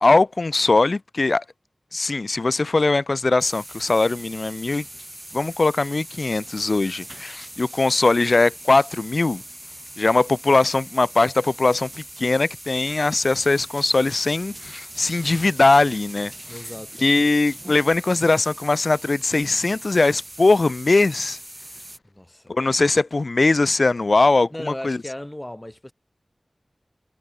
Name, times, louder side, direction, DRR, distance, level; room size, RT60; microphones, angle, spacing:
voice 1, 0.0-1.4 1.9-4.8 5.3-9.4 10.0-11.9 12.2-16.6 17.0-21.4 22.5-25.0, left 3 dB, 55° left, 1.2 m, -20 dB
sound 1, 3.4-22.0, right 1 dB, 15° right, 3.2 m, -40 dB
voice 2, 16.5-17.1 22.1-22.8 24.5-25.9, left 1 dB, 15° left, 5.7 m, -36 dB
wide cardioid pair, 70°, 0 cm